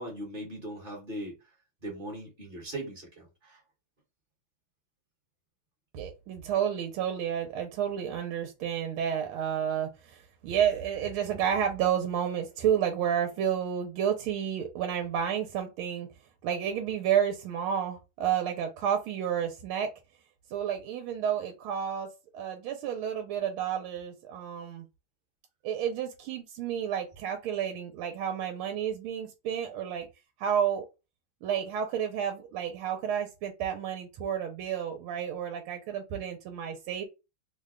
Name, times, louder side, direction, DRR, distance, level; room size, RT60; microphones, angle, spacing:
voice 1, 0.0-1.4 1.8-3.6, right 1 dB, 35° right, -1 dB, 1.0 m, -39 dB
voice 2, 5.9-16.1 16.4-19.9 20.5-22.1 22.3-24.8 25.6-30.1 30.4-30.9 31.4-37.0, right 9 dB, 85° right, 5 dB, 1.4 m, -30 dB
3.4 x 2.2 x 3.6 m, 0.27 s
omnidirectional pair, 2.3 m